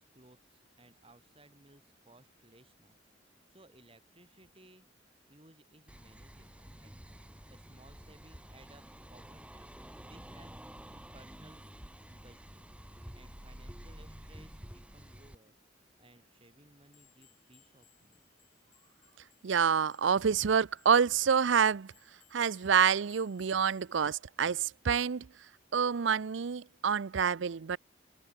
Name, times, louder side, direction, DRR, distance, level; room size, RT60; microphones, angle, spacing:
voice 1, 0.0-3.0 3.5-4.8 5.3-10.5 10.9-12.7 13.1-15.5 16.0-18.2, right 1 dB, 30° right, 7.2 m, -61 dB
sound 1, 5.9-15.3, equal, 5° right, 1.5 m, -50 dB
sound 2, 16.9-24.1, left 12 dB, 45° left, 6.2 m, -67 dB
voice 2, 19.4-21.9 22.3-25.3 25.7-27.8, right 7 dB, 80° right, 0.5 m, -27 dB
open air
head